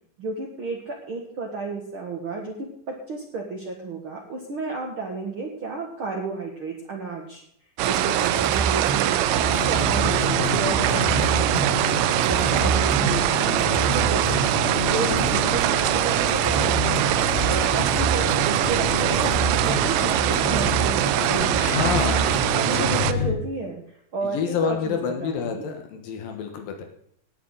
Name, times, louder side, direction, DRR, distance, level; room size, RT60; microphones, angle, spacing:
voice 1, 0.2-2.5 2.9-7.4 7.9-11.8 12.2-14.5 14.9-17.1 17.5-22.0 22.6-23.8 24.1-25.6, right 3 dB, 45° right, 0 dB, 2.2 m, -32 dB
sound 1, 7.8-22.4, right 3 dB, ahead, 3.6 m, -30 dB
sound 2, 7.8-23.1, right 14 dB, 80° right, 2.2 m, -23 dB
sound 3, 9.3-23.4, left 3 dB, 45° left, 0.8 m, -30 dB
voice 2, 15.0-15.4 21.6-23.3 24.2-26.8, left 7 dB, 80° left, 4 dB, 3.1 m, -29 dB
18.5 x 8.8 x 4.1 m, 0.68 s
omnidirectional pair, 4.0 m